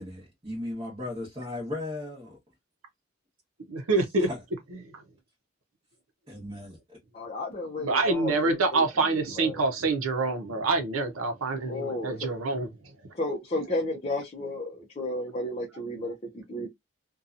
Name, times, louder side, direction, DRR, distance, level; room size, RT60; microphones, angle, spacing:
voice 1, 0.0-2.4 4.2-4.4 6.3-7.0, left 2 dB, 25° right, 1.0 m, -36 dB
voice 2, 3.7-4.3 4.9-5.0 7.8-12.7, right 3 dB, 85° right, 0.6 m, -26 dB
voice 3, 7.1-9.6 11.7-12.3 13.1-16.7, left 1 dB, 30° left, 0.5 m, -33 dB
2.7 x 2.2 x 2.4 m
head